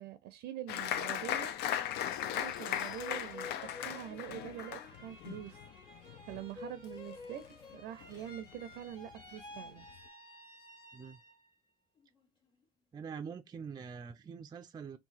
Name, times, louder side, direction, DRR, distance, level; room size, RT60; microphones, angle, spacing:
voice 1, 0.0-1.5 2.2-5.6 6.3-9.9, right 11 dB, 80° right, 0.5 m, -45 dB
Applause, 0.7-7.7 8.0-8.7 9.1-9.2 9.6-10.0, left 11 dB, 75° left, 0.4 m, -38 dB
sound 1, 1.7-11.5 12.0-12.6, left 2 dB, 30° left, 1.5 m, -52 dB
sound 2, 2.0-3.8, left 9 dB, 45° left, 1.3 m, -61 dB
voice 2, 12.9-15.0, right 6 dB, 25° right, 0.3 m, -44 dB
2.8 x 2.3 x 3.9 m
cardioid pair, 110°, 17 cm